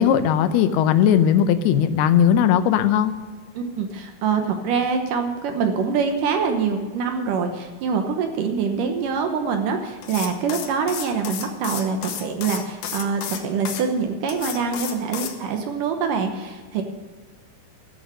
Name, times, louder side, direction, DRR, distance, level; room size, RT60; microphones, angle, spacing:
voice 1, 0.0-3.1, left 9 dB, 90° left, 11 dB, 2.7 m, -18 dB
voice 2, 3.6-16.8, right 5 dB, 70° right, 5 dB, 2.3 m, -25 dB
sound 1, 10.0-13.8 14.3-15.4, left 8 dB, 70° left, 2.3 m, -32 dB
14.0 x 7.1 x 6.4 m, 1.5 s
omnidirectional pair, 4.5 m